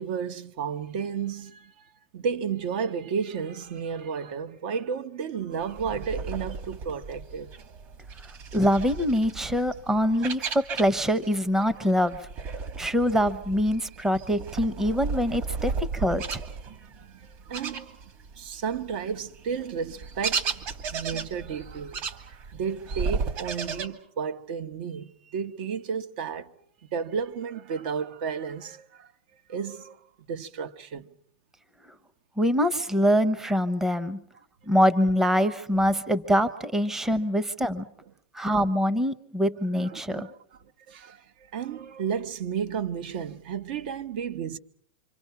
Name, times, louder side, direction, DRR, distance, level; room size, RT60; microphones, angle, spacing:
voice 1, 0.0-7.5 15.6-15.7 17.0-18.0 18.3-20.7 20.9-26.5 26.9-29.1 29.5-31.1 39.8-40.6 40.9-44.6, right 6 dB, 60° right, 1.3 m, -33 dB
sound 1, 5.6-11.3 11.6-18.4 18.7-23.9, right 5 dB, 40° right, 2.4 m, -35 dB
voice 2, 8.5-12.2 12.8-16.4 32.4-34.2 34.7-37.8 38.3-40.3, equal, 5° right, 0.9 m, -24 dB
27.5 x 25.0 x 5.9 m
supercardioid pair, 145°, 6 cm